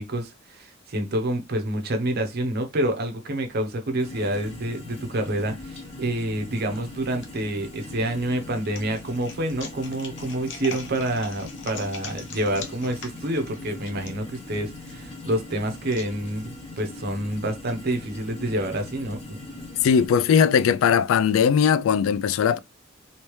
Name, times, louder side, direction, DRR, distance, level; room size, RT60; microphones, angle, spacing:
voice 1, 0.0-19.4, right 1 dB, 50° right, 0.7 m, -28 dB
sound 1, 4.0-20.1, left 2 dB, 30° left, 0.9 m, -41 dB
sound 2, 6.7-7.3 7.8-16.8, left 5 dB, 65° left, 0.7 m, -42 dB
voice 2, 19.8-22.6, left 7 dB, 80° left, 0.3 m, -19 dB
3.1 x 2.8 x 3.0 m
head